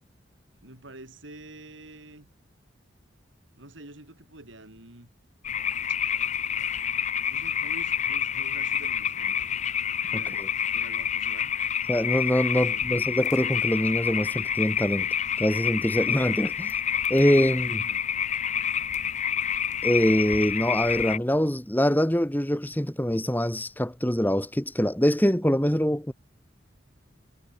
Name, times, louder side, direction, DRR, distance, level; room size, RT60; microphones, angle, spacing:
voice 1, 0.6-2.3 3.6-5.1 7.3-9.6 10.1-11.5 12.7-13.2 17.7-18.0, right 1 dB, 90° right, 4.8 m, -47 dB
sound 1, 5.4-21.2, left 8 dB, 40° left, 0.8 m, -28 dB
voice 2, 10.1-10.5 11.9-15.1 15.4-16.8 17.1-17.8 19.8-26.1, equal, 10° left, 1.7 m, -24 dB
head